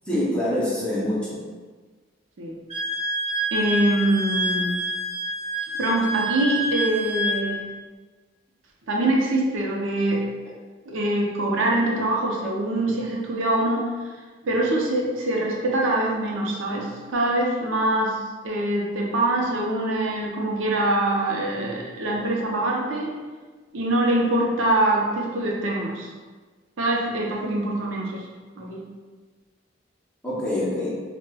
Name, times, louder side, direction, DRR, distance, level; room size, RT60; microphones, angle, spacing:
voice 1, 0.1-1.4 30.2-31.0, left 1 dB, 5° left, -8 dB, 0.6 m, -25 dB
Wind instrument woodwind instrument, 2.7-7.4, equal, 30° right, 1.1 m, -27 dB
voice 2, 3.5-4.7 5.8-7.6 8.9-10.2 10.9-13.9 14.4-18.2 18.4-23.1 23.7-26.1 26.8-28.2 28.6-28.8, right 1 dB, 75° right, -2 dB, 0.5 m, -24 dB
4.0 x 2.1 x 2.2 m, 1.4 s
head